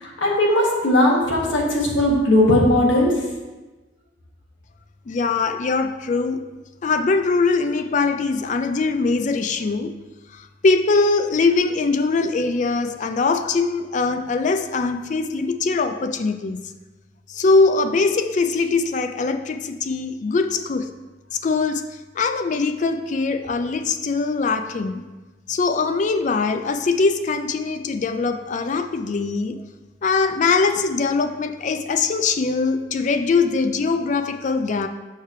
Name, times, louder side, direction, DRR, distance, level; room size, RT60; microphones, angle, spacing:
voice 1, 0.0-3.1, left 1 dB, 90° left, -2 dB, 1.4 m, -18 dB
voice 2, 5.1-6.4 6.8-9.9 10.3-16.6 17.3-20.9 21.3-25.0 25.5-29.6 30.0-34.9, left 4 dB, 40° left, 7 dB, 0.4 m, -22 dB
6.6 x 3.2 x 5.5 m, 1.2 s
head